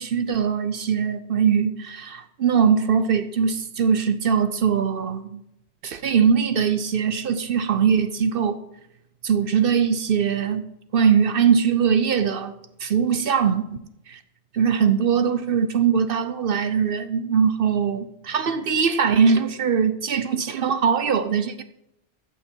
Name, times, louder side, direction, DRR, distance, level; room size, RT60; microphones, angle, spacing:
voice 1, 0.0-5.4 5.8-8.6 9.2-10.6 10.9-12.5 12.8-13.8 14.1-14.2 14.5-21.6, right 7 dB, 60° right, 0.8 m, -21 dB
15.0 x 6.0 x 4.5 m
omnidirectional pair, 1.2 m